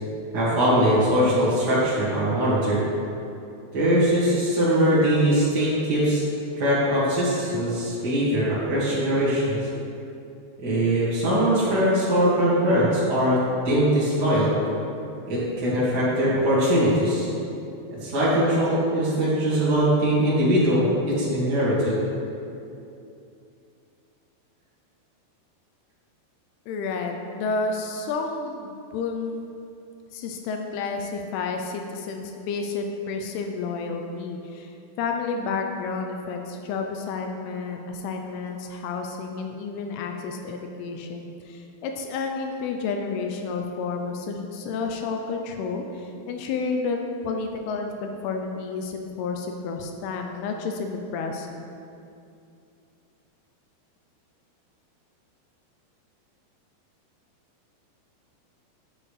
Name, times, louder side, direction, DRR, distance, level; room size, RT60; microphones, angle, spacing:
voice 1, 0.3-2.8 3.7-6.2 6.6-9.6 10.6-14.5 15.3-17.3 17.9-22.0, equal, 40° right, -11 dB, 1.4 m, -21 dB
voice 2, 26.7-29.5 30.1-47.0 47.2-51.6, left 4 dB, 90° left, 3 dB, 2.3 m, -30 dB
9.8 x 8.6 x 3.3 m, 2.6 s
omnidirectional pair, 5.1 m